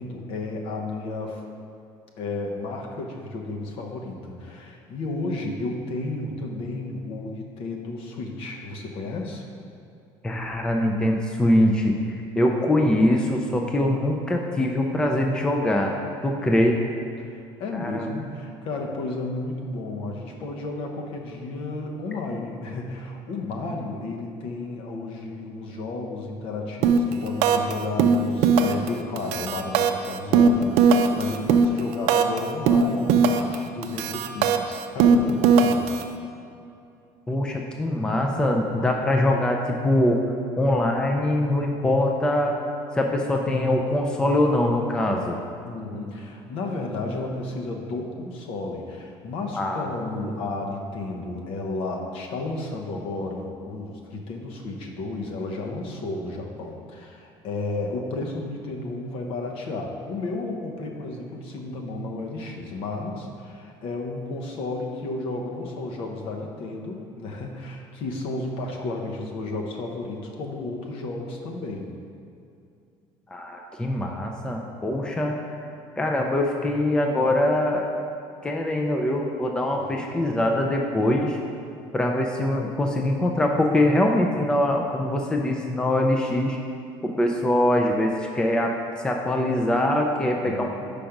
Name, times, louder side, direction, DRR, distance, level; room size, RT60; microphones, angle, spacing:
voice 1, 0.0-1.4 2.2-9.5 17.2-36.0 45.6-71.9 79.7-80.4 90.2-90.7, left 2 dB, 65° left, 1 dB, 0.9 m, -33 dB
voice 2, 10.2-16.0 16.2-16.8 17.7-18.1 37.3-40.2 40.6-42.6 42.9-45.4 49.5-49.9 73.3-75.4 76.0-77.9 78.4-81.4 81.9-86.6 87.0-88.7 89.0-90.7, left 1 dB, 10° left, 2 dB, 0.4 m, -23 dB
sound 1, 26.8-27.1 27.4-27.7 28.0-28.9 29.2-32.4 32.7-33.6 33.8-36.0, right 6 dB, 80° right, 0.4 m, -19 dB
5.2 x 5.1 x 5.8 m, 2.5 s
cardioid pair, 155°, 10 cm